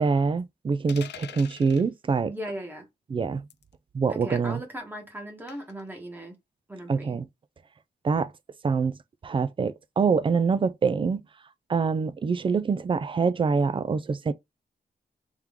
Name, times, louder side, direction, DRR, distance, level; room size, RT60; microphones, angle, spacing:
voice 1, 0.0-2.3 3.1-3.4 3.9-4.6 6.9-7.3 8.0-8.3 8.6-9.0 9.2-11.2 11.7-14.3, right 5 dB, 30° right, 0.3 m, -25 dB
sound 1, 0.9-1.9 3.5-3.7 5.5-5.8, left 10 dB, 90° left, 0.4 m, -43 dB
voice 2, 2.3-2.9 4.1-6.4 6.7-7.2, right 1 dB, 10° right, 1.1 m, -38 dB
3.7 x 3.0 x 3.5 m
wide cardioid pair, 155°, 17 cm